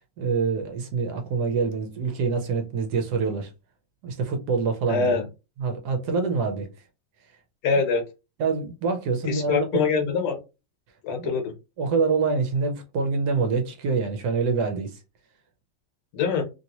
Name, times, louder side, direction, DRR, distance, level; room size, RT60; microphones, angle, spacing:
voice 1, 0.2-3.5 4.0-5.2 5.6-6.7 8.4-9.7 11.2-11.3 11.8-15.0, right 4 dB, 70° right, 1.1 m, -25 dB
voice 2, 4.9-5.2 7.6-8.0 9.2-10.4 11.0-11.5 16.1-16.4, left 5 dB, 70° left, 1.3 m, -24 dB
2.9 x 2.8 x 2.8 m
omnidirectional pair, 2.0 m